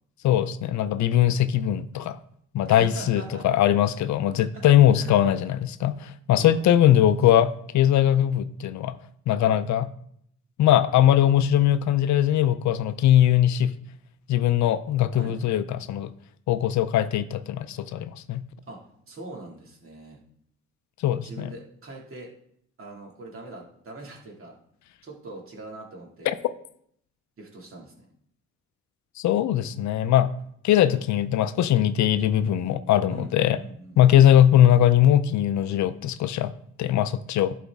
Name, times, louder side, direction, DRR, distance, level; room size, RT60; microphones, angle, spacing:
voice 1, 0.2-2.2 2.5-8.9 9.3-9.9 10.6-13.7 14.3-16.1 16.5-18.4 21.0-21.5 26.3-26.4 29.2-30.3 30.6-33.6 34.0-36.5 36.8-37.6, left 11 dB, 70° left, 13 dB, 0.5 m, -20 dB
voice 2, 2.6-3.5 4.5-4.7 4.9-5.4 6.3-7.0 15.1-15.4 18.7-20.2 21.2-22.3 22.8-24.5 25.0-26.3 27.4-28.1 33.1-34.0, right 2 dB, 45° right, -1 dB, 2.3 m, -42 dB
11.0 x 4.2 x 3.5 m, 0.68 s
cardioid pair, 90°, 30 cm